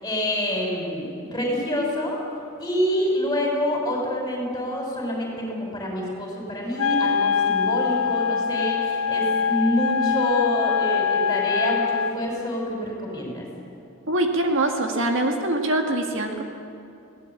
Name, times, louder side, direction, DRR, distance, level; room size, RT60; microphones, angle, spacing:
voice 1, 0.0-2.2 2.6-13.5, equal, 15° left, -1 dB, 6.1 m, -26 dB
Wind instrument woodwind instrument, 6.8-12.2, left 7 dB, 80° left, 0.7 m, -23 dB
voice 2, 14.1-16.4, right 1 dB, 60° right, 3 dB, 2.0 m, -23 dB
21.5 x 18.0 x 8.6 m, 2.8 s
head